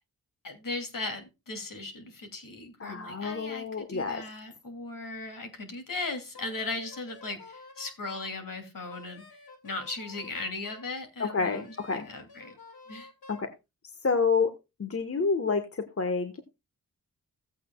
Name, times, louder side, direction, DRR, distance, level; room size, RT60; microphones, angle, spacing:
voice 1, 0.4-9.2 9.6-11.6 11.9-12.6 12.9-13.1, left 3 dB, 60° left, 5 dB, 2.7 m, -37 dB
voice 2, 2.8-4.2 11.2-12.1 13.3-13.5 14.0-14.5 14.8-16.4, left 4 dB, 40° left, 7 dB, 1.3 m, -28 dB
Wind instrument woodwind instrument, 6.3-8.3 8.9-10.9 11.5-13.5, left 3 dB, 75° left, 2.3 m, -50 dB
16.0 x 8.3 x 2.3 m, 0.24 s
cardioid pair, 45°, 37 cm